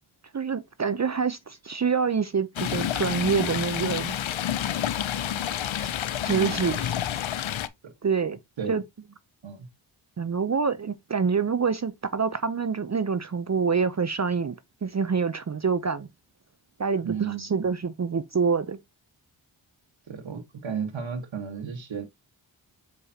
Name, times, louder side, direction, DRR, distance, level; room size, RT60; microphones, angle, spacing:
voice 1, 0.3-4.2 5.8-5.9 6.2-6.8 8.0-8.4 8.7-8.8 10.2-16.1 16.8-18.8, right 5 dB, 35° right, 0.7 m, -26 dB
Stream, 2.6-7.7, left 10 dB, 75° left, 0.8 m, -29 dB
voice 2, 6.3-7.0 8.6-8.8 9.4-9.7 17.0-17.5 20.1-22.0, right 6 dB, 70° right, 1.7 m, -34 dB
6.9 x 5.0 x 2.9 m
cardioid pair, 45°, 47 cm